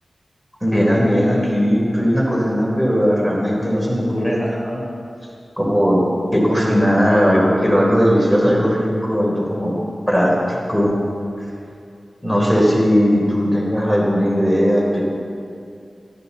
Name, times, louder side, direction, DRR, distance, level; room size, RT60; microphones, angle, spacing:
voice 1, 0.6-4.8 5.6-6.0 6.3-9.7 10.1-11.0 12.2-15.0, equal, 5° left, -3 dB, 3.9 m, -17 dB
21.0 x 14.0 x 4.2 m, 2.4 s
wide cardioid pair, 85°, 0 cm